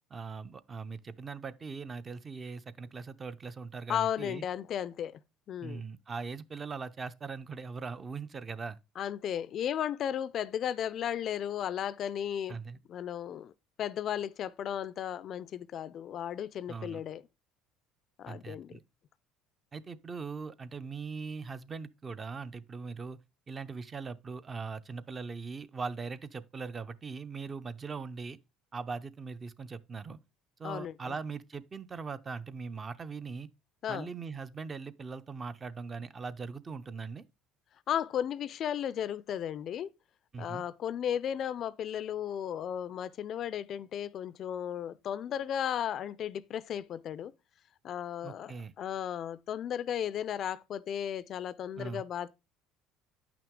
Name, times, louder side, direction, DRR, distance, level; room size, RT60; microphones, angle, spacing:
voice 1, 0.1-4.4 5.6-8.8 12.5-12.8 16.7-17.0 18.3-18.8 19.7-23.2 23.5-28.4 28.7-30.2 30.6-33.5 33.9-37.2 40.3-40.6 48.2-48.7 51.8-52.0, right 4 dB, 25° right, 0.5 m, -40 dB
voice 2, 3.9-5.1 5.5-5.8 9.0-12.6 12.9-13.5 13.8-17.2 18.2-18.7 30.6-31.1 33.8-34.1 37.9-39.9 40.4-47.3 47.8-52.3, left 9 dB, 50° left, 0.4 m, -35 dB
9.0 x 5.9 x 3.6 m
cardioid pair, 115°, 0 cm